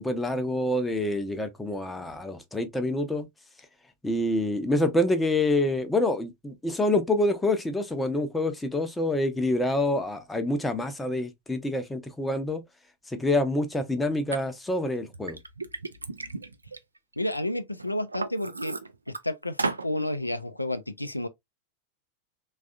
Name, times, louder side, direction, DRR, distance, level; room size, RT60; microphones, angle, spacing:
voice 1, 0.0-3.3 4.0-12.6 13.1-15.4, left 1 dB, 10° left, 0.6 m, -27 dB
Liquid, 14.3-14.4 15.0-17.4 17.8-19.2 19.6-19.9, right 3 dB, 80° right, 0.3 m, -34 dB
voice 2, 17.2-18.8 19.2-19.6 19.8-21.3, left 1 dB, 85° left, 0.3 m, -30 dB
3.4 x 2.4 x 2.3 m
figure-of-eight pair, 90°, 0 cm